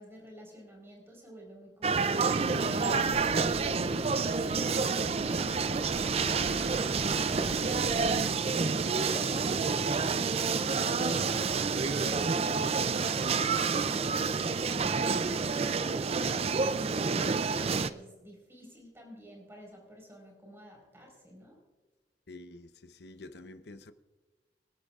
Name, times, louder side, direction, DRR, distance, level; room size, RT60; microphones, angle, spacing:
voice 1, 0.0-3.8 4.2-6.8 7.2-12.9 13.5-21.6, equal, 15° right, 4.5 m, -48 dB
sound 1, 1.8-17.9, right 5 dB, 35° right, 0.4 m, -29 dB
Engine starting, 2.1-8.4, right 1 dB, 65° right, 1.4 m, -40 dB
voice 2, 22.3-23.9, left 2 dB, 65° left, 0.8 m, -48 dB
25.5 x 12.0 x 2.5 m
head